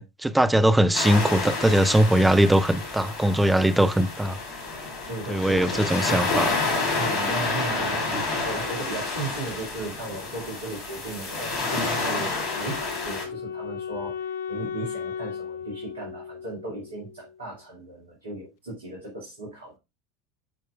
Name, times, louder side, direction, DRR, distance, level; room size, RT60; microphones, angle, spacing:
voice 1, 0.0-4.4 5.3-6.6, right 1 dB, 5° right, 0.7 m, -21 dB
sound 1, 0.9-13.2, left 3 dB, 40° left, 3.4 m, -29 dB
voice 2, 5.1-6.0 7.0-19.8, right 2 dB, 70° right, 2.1 m, -36 dB
Wind instrument woodwind instrument, 12.4-17.4, left 7 dB, 60° left, 0.5 m, -36 dB
11.5 x 4.7 x 2.3 m
figure-of-eight pair, 75°, 0 cm